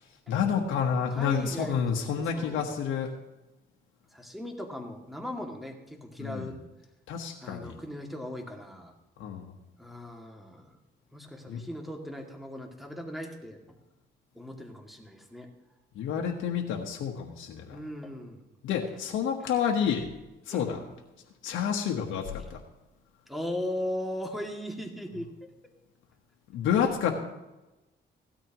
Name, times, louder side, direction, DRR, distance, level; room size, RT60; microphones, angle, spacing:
voice 1, 0.3-3.1 6.2-6.5 7.1-7.8 9.2-9.5 11.5-11.6 15.9-17.8 18.6-20.1 20.4-20.8 21.4-22.6 26.5-27.2, left 7 dB, 85° left, 1 dB, 1.3 m, -29 dB
voice 2, 1.1-1.9 2.2-2.7 4.1-6.6 7.4-8.9 9.8-10.7 11.1-13.6 14.4-15.5 17.7-18.4 20.5-20.9 23.3-25.3, left 1 dB, ahead, 1 dB, 2.4 m, -38 dB
16.5 x 13.0 x 3.0 m, 1.0 s
cardioid pair, 90°, 20 cm